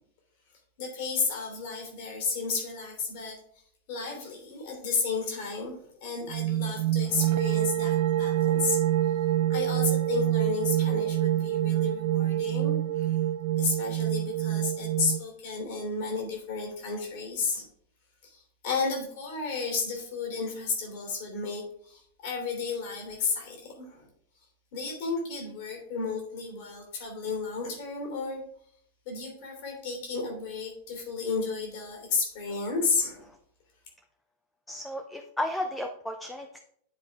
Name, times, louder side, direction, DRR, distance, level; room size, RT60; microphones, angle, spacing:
voice 1, 0.8-3.4 3.9-5.7 6.0-8.8 9.5-13.1 13.6-17.6 18.2-24.1 24.7-28.4 29.0-33.3, left 4 dB, 50° left, 1 dB, 3.2 m, -32 dB
sound 1, 6.3-15.2, right 13 dB, 55° right, 0.4 m, -26 dB
voice 2, 34.7-36.6, left 1 dB, 5° left, 4 dB, 0.7 m, -33 dB
9.2 x 5.0 x 3.6 m, 0.65 s
figure-of-eight pair, 90°, 0 cm